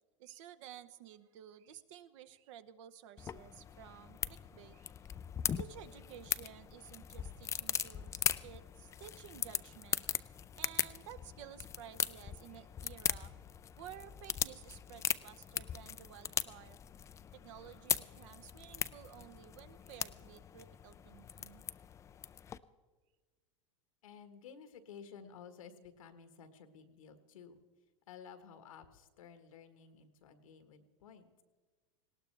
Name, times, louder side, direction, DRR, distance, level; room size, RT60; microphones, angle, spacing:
voice 1, 0.2-4.9 5.6-10.0 10.6-13.3 13.8-16.8 17.3-21.7, right 10 dB, 65° right, 12 dB, 0.9 m, -53 dB
sound 1, 3.2-22.6, left 8 dB, 15° left, 0.3 m, -40 dB
voice 2, 24.0-27.6 28.1-31.4, left 7 dB, 85° left, 9 dB, 1.5 m, -54 dB
19.0 x 17.5 x 3.4 m, 1.4 s
supercardioid pair, 125°, 17 cm